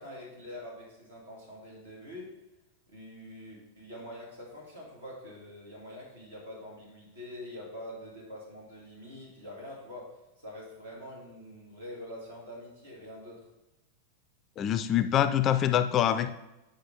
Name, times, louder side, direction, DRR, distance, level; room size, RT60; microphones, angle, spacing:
voice 1, 0.0-2.3 2.9-10.1 10.4-13.4, left 1 dB, 75° right, -3 dB, 2.2 m, -45 dB
voice 2, 14.6-16.3, left 10 dB, 30° left, 11 dB, 0.3 m, -25 dB
8.8 x 5.0 x 3.6 m, 0.98 s
figure-of-eight pair, 90°, 0 cm